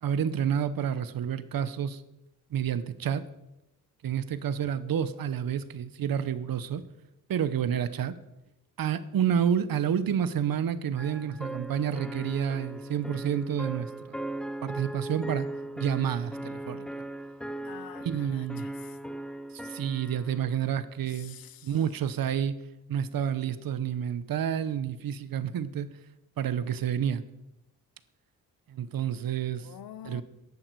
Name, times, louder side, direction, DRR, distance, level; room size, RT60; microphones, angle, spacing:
voice 1, 0.0-2.0 2.5-3.2 4.0-6.8 7.3-8.2 8.8-14.2 14.6-15.5 15.8-16.9 18.0-18.7 19.6-21.4 21.6-22.5 22.9-25.9 26.4-27.2 28.7-29.7 30.0-30.2, right 8 dB, 80° right, 14 dB, 0.9 m, -29 dB
sound 1, 11.0-20.4, right 1 dB, ahead, 0.4 m, -38 dB
voice 2, 17.6-19.0 21.1-21.8 29.6-30.2, left 10 dB, 85° left, 16 dB, 0.8 m, -47 dB
14.5 x 11.0 x 4.7 m, 0.93 s
wide cardioid pair, 165°, 34 cm